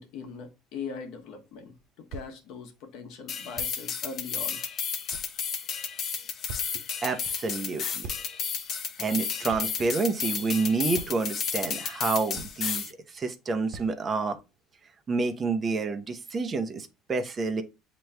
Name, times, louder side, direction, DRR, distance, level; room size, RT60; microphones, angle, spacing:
voice 1, 0.0-4.7, left 5 dB, 70° left, 1.2 m, -41 dB
sound 1, 1.5-1.6 2.1-2.3 3.5-3.8 4.6-4.7 5.1-5.7 6.1-6.2 6.5-6.7 8.0-8.3 8.6-8.7 9.5-9.7 10.4-10.5 10.9-11.3 12.0-12.1 12.3-12.7 13.1-13.2 13.7-14.0 14.6-14.7, right 4 dB, 70° right, 0.5 m, -42 dB
sound 2, 3.3-12.9, left 7 dB, 50° left, 0.7 m, -32 dB
voice 2, 7.0-8.1 9.0-14.4 15.1-17.6, right 4 dB, 35° right, 0.8 m, -29 dB
7.6 x 3.0 x 2.2 m
supercardioid pair, 85°, 0 cm